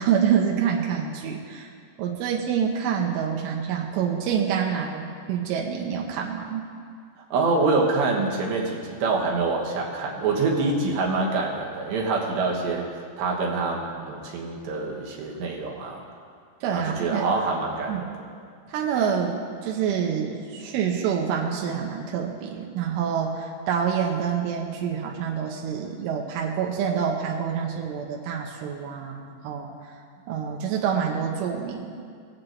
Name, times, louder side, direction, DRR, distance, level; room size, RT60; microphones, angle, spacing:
voice 1, 0.0-1.7 2.0-6.7 10.5-10.7 16.6-17.3 17.9-18.1 18.7-29.7 30.3-32.0, right 7 dB, 85° right, 0 dB, 3.5 m, -27 dB
voice 2, 7.3-16.0 16.7-18.0, right 3 dB, 70° right, -2 dB, 3.4 m, -26 dB
22.0 x 7.8 x 4.0 m, 2.2 s
omnidirectional pair, 5.5 m